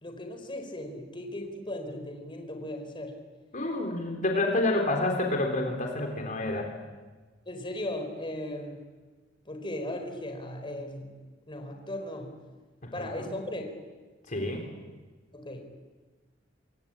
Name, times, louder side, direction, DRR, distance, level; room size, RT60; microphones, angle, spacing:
voice 1, 0.0-3.1 7.5-8.7 9.5-11.2 11.5-12.3 12.9-13.7 15.3-15.6, left 1 dB, 25° left, 5 dB, 4.1 m, -37 dB
voice 2, 3.5-6.7 12.8-13.1 14.3-14.6, left 2 dB, 45° left, 2 dB, 3.7 m, -28 dB
27.0 x 23.5 x 8.9 m, 1.3 s
head